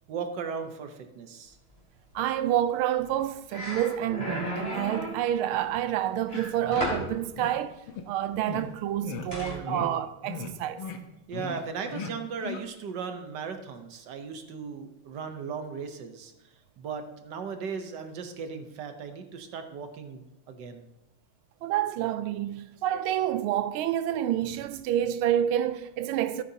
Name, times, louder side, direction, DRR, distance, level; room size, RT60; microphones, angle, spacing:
voice 1, 0.1-1.6 9.4-10.0 11.3-20.9, right 6 dB, 65° right, 1.4 m, -37 dB
voice 2, 2.1-10.8 21.6-26.4, right 11 dB, 85° right, 1.5 m, -28 dB
sound 1, 3.0-3.2 3.5-5.2 6.3-7.1 9.3-9.6, left 1 dB, 15° left, 2.8 m, -34 dB
sound 2, 6.3-6.4 6.7-7.0 7.4-7.5 7.9-8.0 8.5-8.7 9.0-9.3 9.7-9.9 10.2-10.5 10.8-11.0 11.3-11.6 11.9-12.1 12.4-12.6, left 6 dB, 75° left, 1.6 m, -37 dB
13.5 x 8.3 x 2.8 m
omnidirectional pair, 2.3 m